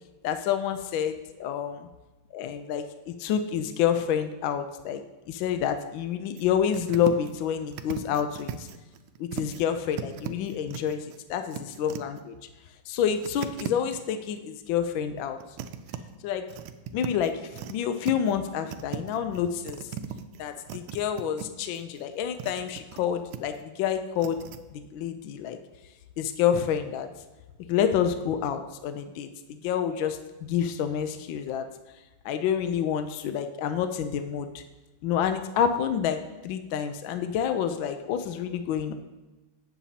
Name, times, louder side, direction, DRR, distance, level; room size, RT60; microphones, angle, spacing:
voice 1, 0.2-1.8 2.3-5.0 5.3-8.7 9.2-12.3 12.9-15.4 16.2-16.5 16.9-19.9 20.4-24.4 24.7-25.6 26.2-27.1 27.7-31.7 32.2-34.6 35.0-38.9, left 8 dB, 75° left, 8 dB, 1.2 m, -28 dB
sound 1, 6.4-6.5 6.7-7.4 7.7-9.6 9.9-12.2 13.2-14.0 15.2-16.0 16.5-17.7 18.0-18.5 18.7-21.5 21.7-23.0 23.3-23.6 24.2-24.6, right 9 dB, 75° right, 1.4 m, -37 dB
17.0 x 7.1 x 2.8 m, 1.1 s
omnidirectional pair, 2.4 m